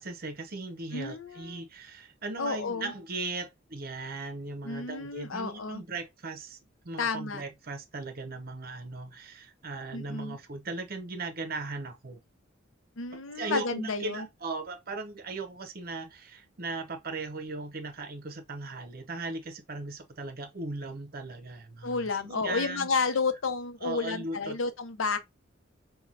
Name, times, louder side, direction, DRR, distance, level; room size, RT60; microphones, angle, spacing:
voice 1, 0.0-6.6 6.8-12.2 13.1-22.9 23.8-24.6, right 3 dB, 50° right, 0.8 m, -38 dB
voice 2, 0.9-1.7 2.4-2.9 4.6-5.8 7.0-7.4 9.9-10.4 13.0-14.3 21.8-25.2, left 4 dB, 85° left, 0.7 m, -31 dB
5.7 x 2.3 x 2.4 m
head